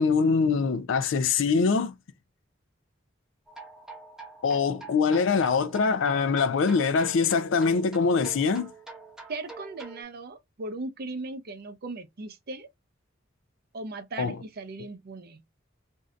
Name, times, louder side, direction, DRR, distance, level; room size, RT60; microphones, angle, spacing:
voice 1, 0.0-1.9 4.4-8.7 14.2-14.4, left 5 dB, 70° left, 0.4 m, -23 dB
sound 1, 3.5-10.0, right 3 dB, 5° right, 0.8 m, -46 dB
voice 2, 9.3-12.7 13.7-15.4, right 2 dB, 50° right, 0.6 m, -38 dB
2.6 x 2.5 x 3.2 m
head